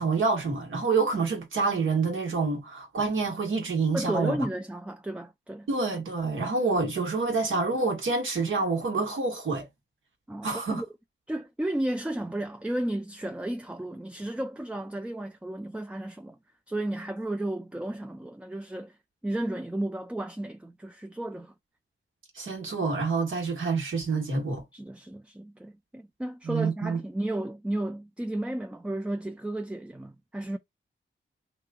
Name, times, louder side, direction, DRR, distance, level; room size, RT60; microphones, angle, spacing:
voice 1, 0.0-4.4 5.7-9.7 10.4-10.8 22.3-24.6 26.4-27.0, right 4 dB, 75° right, 1.3 m, -27 dB
voice 2, 3.9-5.7 10.3-10.9 11.3-16.4 16.7-19.0 19.2-21.5 24.7-30.6, right 1 dB, 5° right, 0.3 m, -33 dB
3.1 x 2.3 x 3.5 m
wide cardioid pair, 80°, 21 cm